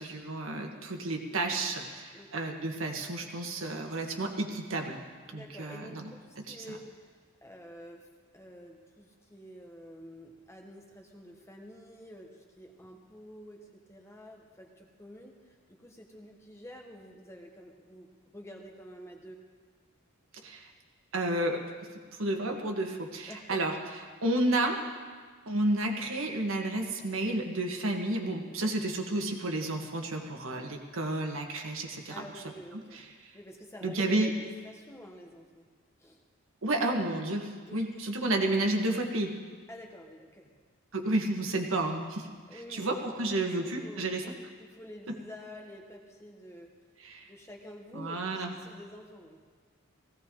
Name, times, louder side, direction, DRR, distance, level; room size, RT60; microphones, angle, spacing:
voice 1, 0.0-5.0 5.3-6.1 6.5-6.8 20.4-20.7 21.1-21.9 22.2-23.8 24.2-24.8 25.5-32.2 32.9-33.0 33.8-34.3 36.6-39.4 40.9-42.3 42.7-44.2 47.0-47.2 47.9-48.5, right 2 dB, 75° right, 2 dB, 1.5 m, -31 dB
voice 2, 2.1-2.5 5.3-7.1 7.4-8.1 8.3-19.4 23.3-23.6 28.5-28.7 32.1-33.1 33.3-35.7 36.0-36.2 37.7-38.1 39.7-40.5 42.5-46.7 47.2-49.4, equal, 15° left, 2 dB, 1.2 m, -49 dB
17.5 x 16.0 x 3.8 m, 1.5 s
head